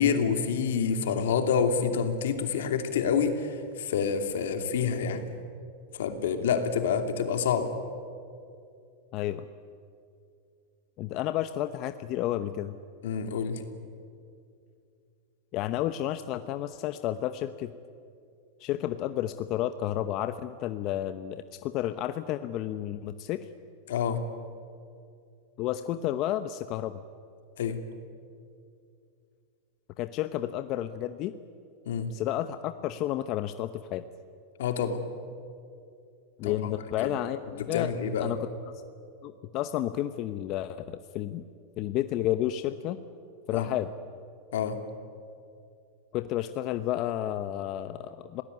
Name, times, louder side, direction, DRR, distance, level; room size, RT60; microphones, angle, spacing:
voice 1, 0.0-5.2 5.9-7.7 13.0-13.6 23.9-24.2 27.6-27.8 31.9-32.1 34.6-35.0 36.4-36.7 37.6-38.3 43.5-43.7 44.5-44.8, left 6 dB, 80° left, 7 dB, 2.7 m, -27 dB
voice 2, 9.1-9.5 11.0-12.8 15.5-17.7 18.6-23.5 25.6-27.0 30.0-31.3 32.1-34.0 36.4-37.9 38.2-38.4 39.2-41.4 41.8-43.0 43.5-43.9 46.1-48.4, left 13 dB, 45° left, 11 dB, 0.9 m, -31 dB
27.5 x 18.5 x 9.6 m, 2.4 s
hypercardioid pair, 120°, 0 cm